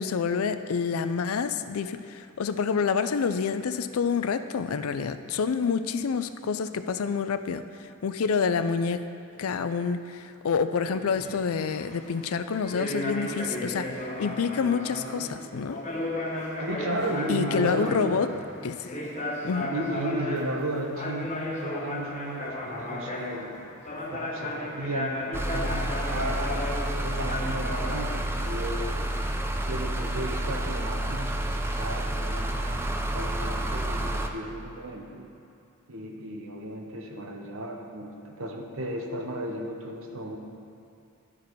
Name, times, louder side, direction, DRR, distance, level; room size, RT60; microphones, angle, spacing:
voice 1, 0.0-9.0 9.3-15.8 17.3-18.3 18.6-18.9 19.4-19.7, left 5 dB, 80° left, 11 dB, 0.4 m, -28 dB
sound 1, 10.9-28.0, left 1 dB, 35° left, 0.9 m, -34 dB
voice 2, 16.6-18.2 19.7-23.5 24.1-25.2 25.5-28.9 29.7-31.4 31.7-32.8 33.1-35.3 35.9-40.4, right 1 dB, 70° right, 2 dB, 0.9 m, -34 dB
sound 2, 25.3-34.3, right 1 dB, 10° right, 0.4 m, -29 dB
12.0 x 5.0 x 4.5 m, 2.7 s
head